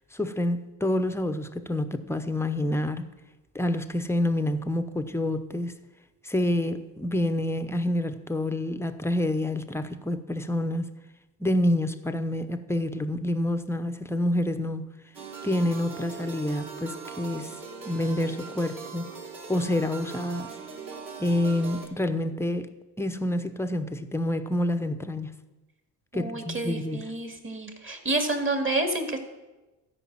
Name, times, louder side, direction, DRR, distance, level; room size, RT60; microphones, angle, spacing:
voice 1, 0.1-3.0 3.5-5.7 6.2-10.9 11.4-14.8 15.4-17.5 17.8-19.1 19.5-20.5 21.2-22.7 23.0-25.3 26.1-27.0, left 1 dB, 5° left, 0.8 m, -28 dB
sound 1, 15.1-21.9, right 5 dB, 45° right, 3.2 m, -40 dB
voice 2, 26.1-29.2, right 2 dB, 25° right, 2.1 m, -29 dB
13.0 x 5.3 x 7.4 m
supercardioid pair, 70°, 46 cm